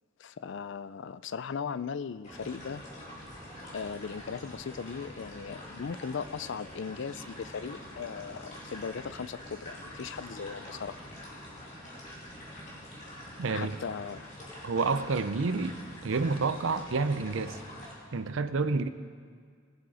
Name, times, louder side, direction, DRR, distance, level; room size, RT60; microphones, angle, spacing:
voice 1, 0.2-2.8 3.7-11.1 13.5-14.3, left 6 dB, 60° left, 15 dB, 0.4 m, -38 dB
sound 1, 2.2-17.9, left 1 dB, 35° left, 3.0 m, -46 dB
voice 2, 13.4-13.8 14.6-15.8 16.0-17.6 18.1-18.9, right 4 dB, 65° right, 11 dB, 0.6 m, -29 dB
20.0 x 7.8 x 4.9 m, 2.1 s
head